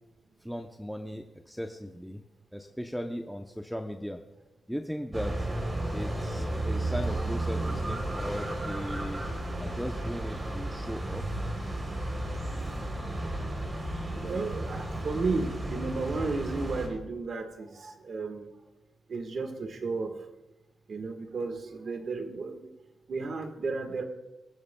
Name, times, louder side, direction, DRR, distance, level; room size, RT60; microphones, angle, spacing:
voice 1, 0.4-2.2 2.5-4.2 4.7-5.5 5.9-9.2 9.6-11.2, equal, ahead, 4 dB, 0.6 m, -37 dB
sound 1, 5.1-16.9, right 1 dB, 25° right, 3.1 m, -33 dB
voice 2, 14.1-18.5 19.1-20.2 20.9-22.7 23.1-24.0, right 4 dB, 50° right, 6 dB, 1.4 m, -33 dB
25.0 x 14.0 x 2.2 m, 1.1 s
wide cardioid pair, 145°, 0 cm